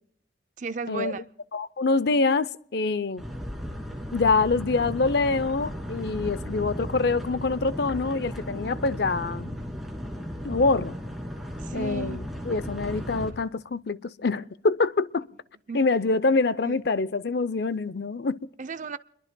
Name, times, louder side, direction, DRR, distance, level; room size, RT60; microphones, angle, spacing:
voice 1, 0.6-1.2 11.6-12.2 15.7-15.8 16.6-16.8 18.6-19.0, right 4 dB, 40° right, 0.5 m, -33 dB
voice 2, 1.5-3.2 4.1-9.5 10.4-11.0 11.7-15.3 15.7-18.4, left 3 dB, 60° left, 0.6 m, -25 dB
sound 1, 3.2-13.3, equal, ahead, 2.5 m, -35 dB
29.0 x 22.0 x 2.2 m
head